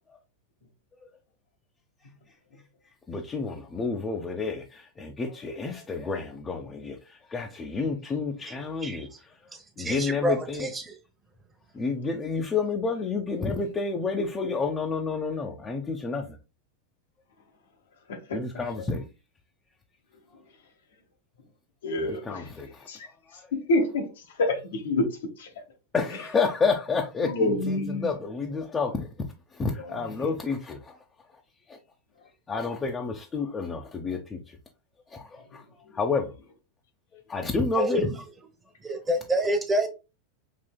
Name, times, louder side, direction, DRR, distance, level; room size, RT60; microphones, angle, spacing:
voice 1, 3.1-9.3 9.8-10.7 11.7-16.4 18.3-19.0 22.0-22.9 23.3-23.5 25.9-29.1 29.5-31.0 31.7-31.8 32.5-34.6 35.1-36.3 37.1-38.1, left 4 dB, 20° left, 0.6 m, -30 dB
voice 2, 9.8-11.0 37.8-38.1 38.8-39.9, right 1 dB, 20° right, 1.0 m, -27 dB
voice 3, 21.8-22.2 22.9-23.1 23.5-24.1 24.4-25.1 25.4-25.5 27.3-28.1, left 2 dB, 75° left, 0.9 m, -26 dB
5.1 x 2.7 x 2.2 m
hypercardioid pair, 100°, 0 cm